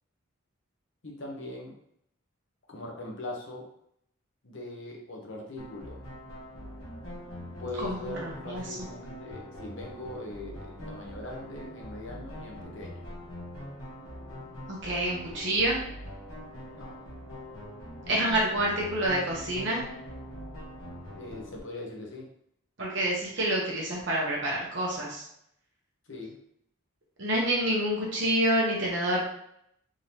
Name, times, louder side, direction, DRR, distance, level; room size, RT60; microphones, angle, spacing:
voice 1, 1.0-1.8 2.7-3.7 4.4-6.0 7.6-13.1 16.7-17.0 21.1-22.3 26.1-26.4, left 2 dB, 60° left, -1 dB, 1.0 m, -41 dB
sound 1, 5.6-21.6, equal, 90° left, 1.3 m, -43 dB
voice 2, 7.8-8.6 14.7-15.8 18.1-19.8 22.8-25.2 27.2-29.2, right 1 dB, 60° right, -4 dB, 1.0 m, -28 dB
3.7 x 3.3 x 2.8 m, 0.72 s
head